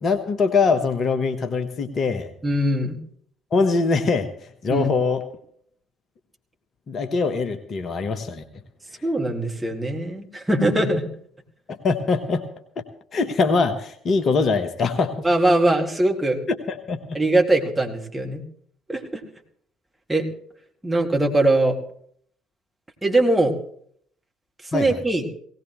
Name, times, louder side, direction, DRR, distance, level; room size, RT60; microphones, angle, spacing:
voice 1, 0.0-2.3 3.5-4.3 4.6-5.2 6.9-8.4 11.7-12.4 12.8-12.9 13.1-15.1 16.5-17.2 24.7-24.9, left 4 dB, 40° left, 7 dB, 1.2 m, -22 dB
voice 2, 2.4-3.0 4.7-4.9 9.0-11.1 15.2-16.4 17.1-18.4 18.9-19.0 20.1-20.3 20.8-21.7 23.0-23.6 24.7-25.2, right 1 dB, 10° right, 1 dB, 2.4 m, -21 dB
18.0 x 17.5 x 3.2 m, 0.62 s
figure-of-eight pair, 50°, 0 cm